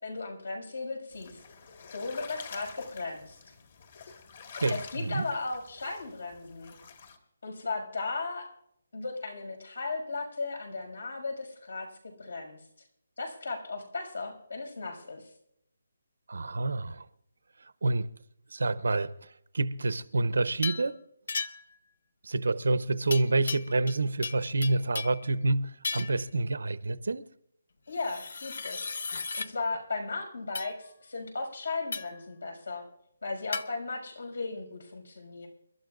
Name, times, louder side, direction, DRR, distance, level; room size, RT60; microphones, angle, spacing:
voice 1, 0.0-1.4 1.9-3.4 4.7-6.8 7.4-8.5 8.9-11.9 12.2-12.6 13.2-15.3 27.9-32.8 33.2-35.5, left 3 dB, 80° left, 6.3 m, -36 dB
sound 1, 1.1-7.2, left 6 dB, 40° left, 1.7 m, -47 dB
voice 2, 4.6-5.3 16.3-17.1 17.8-18.1 18.5-21.0 22.2-27.3, right 2 dB, 80° right, 0.9 m, -28 dB
sound 2, 20.6-20.9 21.3-21.8 23.1-24.0 24.2-25.2 25.8-26.2 27.9-29.5 30.6-30.7 31.9-32.2 33.5-33.7, left 4 dB, 60° left, 0.8 m, -35 dB
29.5 x 12.5 x 2.5 m
hypercardioid pair, 175°, 0 cm